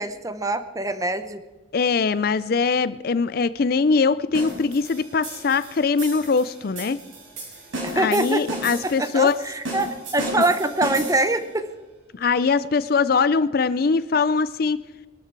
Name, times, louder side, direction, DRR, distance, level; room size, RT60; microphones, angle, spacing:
voice 1, 0.0-1.4 7.8-11.7, right 2 dB, 15° right, 11 dB, 0.8 m, -24 dB
voice 2, 1.7-7.0 7.9-9.4 12.1-14.8, left 4 dB, 50° left, 16 dB, 0.4 m, -22 dB
sound 1, 4.3-11.4, right 1 dB, 80° right, 6.7 m, -34 dB
22.0 x 12.5 x 4.6 m, 1.2 s
head